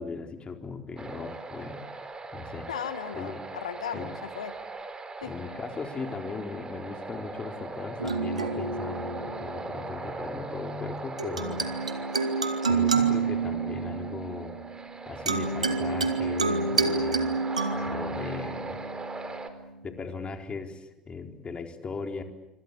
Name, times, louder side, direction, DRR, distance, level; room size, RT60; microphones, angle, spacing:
voice 1, 0.0-2.7 3.2-3.4 3.9-4.1 5.2-11.7 12.7-14.6 15.1-18.8 19.8-22.2, left 4 dB, 30° left, 5 dB, 4.2 m, -38 dB
sound 1, 1.0-19.5, right 3 dB, 20° right, 4.3 m, -39 dB
voice 2, 2.7-4.6 5.2-5.3, left 8 dB, 80° left, 12 dB, 1.7 m, -36 dB
sound 2, 8.0-9.8 11.2-19.7, right 4 dB, 90° right, 2.0 m, -29 dB
26.5 x 26.0 x 8.5 m, 0.94 s
figure-of-eight pair, 65°, 4 cm